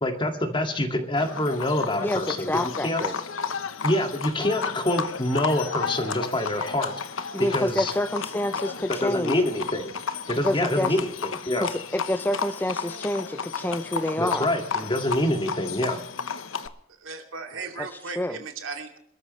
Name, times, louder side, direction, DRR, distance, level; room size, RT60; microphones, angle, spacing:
voice 1, 0.0-2.5 2.8-3.0 3.8-6.9 7.4-7.9 8.9-9.9 10.3-11.7 14.2-16.0, left 1 dB, 25° left, 5 dB, 2.1 m, -26 dB
Livestock farm animals working animals, 1.2-16.7, left 6 dB, 85° left, 1.0 m, -33 dB
voice 2, 2.0-3.1 7.3-9.3 10.4-10.9 11.6-14.5 18.2-18.4, left 1 dB, 10° left, 11 dB, 0.5 m, -28 dB
voice 3, 17.0-19.0, right 4 dB, 85° right, 4 dB, 2.7 m, -36 dB
27.0 x 13.5 x 3.2 m, 0.73 s
head